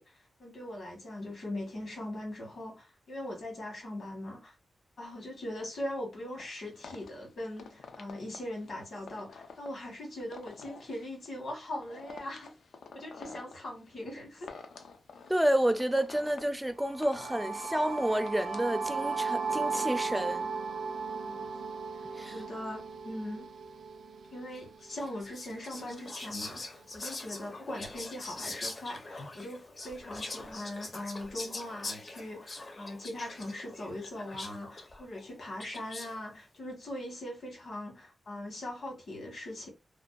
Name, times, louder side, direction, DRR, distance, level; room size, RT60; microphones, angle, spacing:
voice 1, 0.0-4.5 5.0-12.5 12.9-14.5 21.0-21.5 22.2-23.5 24.3-39.7, left 1 dB, 65° left, 1.2 m, -41 dB
sound 1, 6.4-20.2, left 5 dB, 90° left, 0.4 m, -50 dB
voice 2, 15.3-20.5 22.2-22.3, right 1 dB, 5° right, 0.4 m, -29 dB
sound 2, 16.8-24.7, right 4 dB, 85° right, 0.4 m, -36 dB
Whispering, 24.9-36.2, left 2 dB, 45° left, 0.6 m, -43 dB
2.5 x 2.2 x 2.2 m
wide cardioid pair, 100°, 0 cm